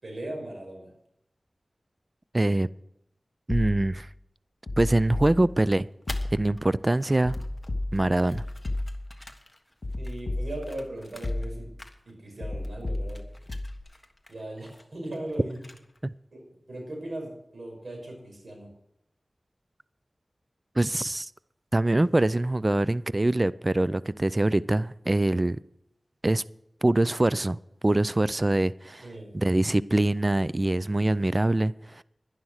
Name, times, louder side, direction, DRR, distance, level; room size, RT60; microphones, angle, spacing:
voice 1, 0.0-0.9 10.0-11.7 12.1-13.2 14.3-15.6 16.3-18.7 29.0-29.3, right 1 dB, 70° right, 5.7 m, -38 dB
voice 2, 2.3-2.7 3.5-4.1 4.8-5.9 6.3-7.4 7.9-8.4 16.0-16.1 20.8-21.3 21.7-25.6 26.2-26.4 26.8-27.6 27.8-29.1 29.3-32.0, right 1 dB, 30° right, 0.4 m, -24 dB
sound 1, 3.5-4.1 4.7-5.7 6.1-6.7 7.2-9.3 9.8-10.9 11.2-11.9 12.4-13.8, left 2 dB, 55° left, 2.2 m, -33 dB
sound 2, 5.3-6.6 6.9-11.5 11.8-12.4 12.6-16.1, left 1 dB, 20° left, 1.4 m, -49 dB
11.5 x 11.0 x 6.5 m
wide cardioid pair, 55°, 0 cm